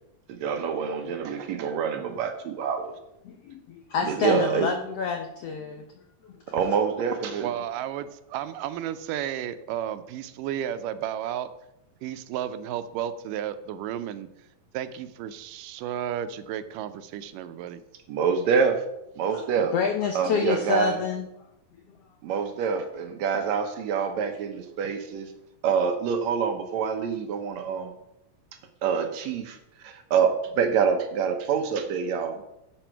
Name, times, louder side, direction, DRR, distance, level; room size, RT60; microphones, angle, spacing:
voice 1, 0.3-2.9 4.0-4.7 6.5-7.5 18.1-18.8 19.2-19.7 20.2-21.0 22.2-25.3 25.6-27.9 28.8-29.6 29.8-32.4, right 6 dB, 70° right, 6 dB, 1.9 m, -26 dB
voice 2, 3.3-5.8 19.3-19.4 19.7-21.3, left 6 dB, 80° left, 5 dB, 1.4 m, -27 dB
voice 3, 7.4-11.5 12.0-14.3 14.7-17.8, right 10 dB, 85° right, 12 dB, 2.2 m, -33 dB
10.5 x 7.9 x 4.6 m, 0.84 s
omnidirectional pair, 3.8 m